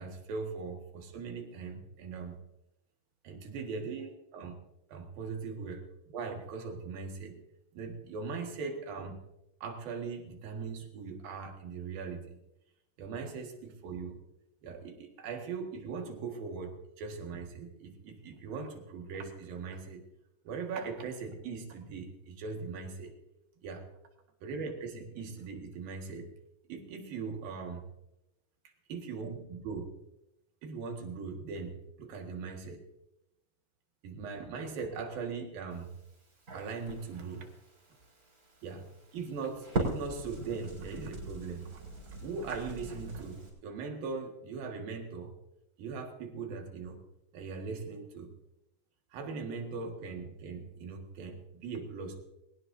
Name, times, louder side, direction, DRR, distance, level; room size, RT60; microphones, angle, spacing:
voice 1, 0.0-2.4 3.2-4.5 4.9-5.9 6.1-7.4 7.7-9.2 9.6-12.4 13.0-14.2 14.6-20.0 20.5-23.1 23.6-23.9 24.4-26.3 26.7-27.8 28.9-29.9 30.6-32.8 34.0-35.9 36.5-37.4 38.6-41.8 42.2-45.4 45.8-47.0 47.3-48.3 49.1-52.2, right 5 dB, 85° right, 3 dB, 3.7 m, -40 dB
Crackle, 35.7-43.5, right 2 dB, 25° right, 4.3 m, -41 dB
22.0 x 18.5 x 2.7 m, 0.88 s
omnidirectional pair, 4.0 m